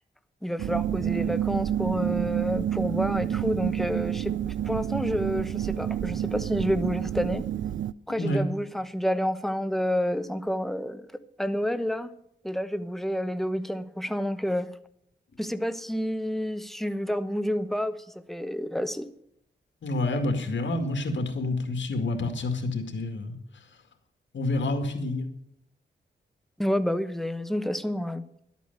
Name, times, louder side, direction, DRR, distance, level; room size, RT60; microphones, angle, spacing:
voice 1, 0.4-7.4 8.1-11.1 11.4-12.1 12.4-14.7 15.4-19.1 26.6-28.2, equal, ahead, 12 dB, 1.0 m, -29 dB
sound 1, 0.6-7.9, right 11 dB, 80° right, 0.4 m, -29 dB
voice 2, 19.8-23.7 24.3-25.2, left 2 dB, 75° left, 5 dB, 2.2 m, -28 dB
12.0 x 8.4 x 6.7 m, 0.72 s
cardioid pair, 60°, 19 cm